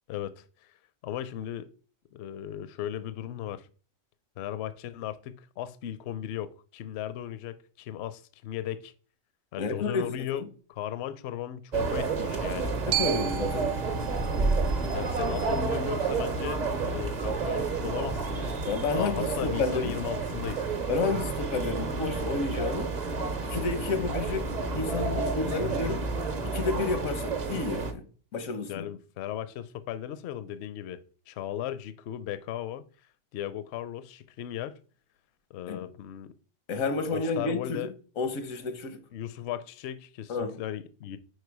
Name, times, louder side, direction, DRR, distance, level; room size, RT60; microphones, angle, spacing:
voice 1, 0.1-0.7 1.0-1.7 2.1-3.7 4.4-8.9 9.5-10.4 10.7-12.8 14.9-18.6 18.9-20.7 28.7-32.8 33.3-34.8 35.5-36.3 37.1-37.9 39.1-41.2, left 11 dB, 65° left, 0.7 m, -36 dB
voice 2, 9.6-10.5 12.8-13.7 18.6-19.9 20.9-22.9 23.4-26.1 26.4-28.0 28.3-28.9 35.7-35.8 36.7-37.9 38.2-39.0 40.3-40.6, left 4 dB, 90° left, 1.4 m, -31 dB
sound 1, 11.7-27.9, right 4 dB, 40° right, 0.7 m, -30 dB
Glockenspiel, 12.9-17.0, right 12 dB, 70° right, 0.9 m, -36 dB
4.9 x 4.5 x 4.7 m
omnidirectional pair, 1.4 m